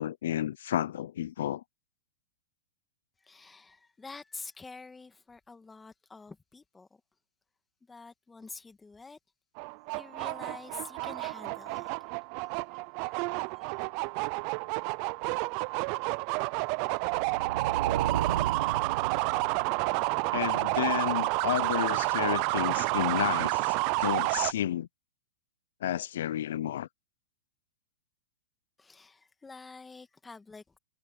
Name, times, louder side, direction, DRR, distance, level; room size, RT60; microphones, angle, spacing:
voice 1, 0.0-1.6 20.3-24.9 25.8-26.9, left 11 dB, 70° left, 0.4 m, -31 dB
voice 2, 3.2-7.0 7.8-9.2 9.9-11.9 12.7-13.2 13.5-13.8 28.8-30.8, left 4 dB, 10° left, 1.7 m, -48 dB
sound 1, 9.6-24.5, right 29 dB, 40° right, 0.4 m, -30 dB
sound 2, 17.1-20.0, right 10 dB, 70° right, 1.0 m, -34 dB
hypercardioid pair, 150°, 0 cm